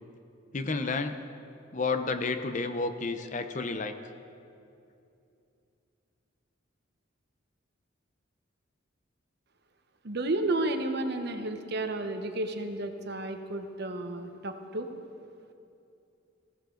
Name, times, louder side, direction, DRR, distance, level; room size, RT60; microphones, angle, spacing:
voice 1, 0.5-1.2 1.7-3.9, left 3 dB, 40° left, 9 dB, 0.7 m, -31 dB
voice 2, 10.0-14.9, right 2 dB, 55° right, 6 dB, 1.0 m, -32 dB
18.5 x 15.5 x 3.9 m, 2.6 s
head